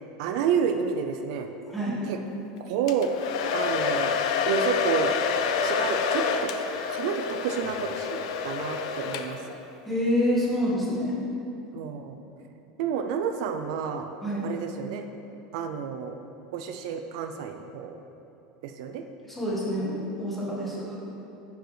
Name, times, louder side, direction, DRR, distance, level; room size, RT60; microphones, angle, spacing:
voice 1, 0.2-1.5 2.1-2.2 2.6-3.1 3.5-4.2 4.5-5.1 5.6-9.4 11.7-12.2 12.8-14.1 14.4-15.0 15.5-16.2 16.5-18.0 18.6-19.0, right 7 dB, 65° right, 6 dB, 0.4 m, -30 dB
voice 2, 1.7-2.0 9.9-11.1 14.2-14.4 19.3-20.9, equal, 5° left, -7 dB, 1.4 m, -27 dB
Domestic sounds home sounds, 2.9-9.6, left 5 dB, 75° left, 0.4 m, -28 dB
10.0 x 4.7 x 3.3 m, 2.9 s
supercardioid pair, 155°, 3 cm